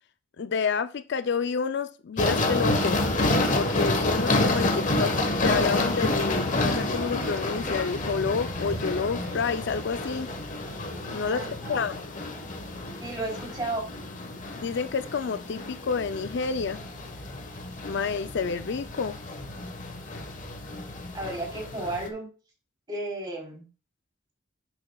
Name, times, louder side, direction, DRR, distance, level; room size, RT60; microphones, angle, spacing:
voice 1, 0.4-3.1 3.5-5.1 5.4-10.3 11.1-12.0 14.6-16.8 17.8-19.2, left 5 dB, 60° left, 0.4 m, -29 dB
sound 1, 2.2-22.1, left 2 dB, 40° left, 1.3 m, -29 dB
voice 2, 11.2-11.9 13.0-13.9 21.1-22.3 22.9-23.7, right 2 dB, 25° right, 3.4 m, -33 dB
10.5 x 7.6 x 2.3 m
head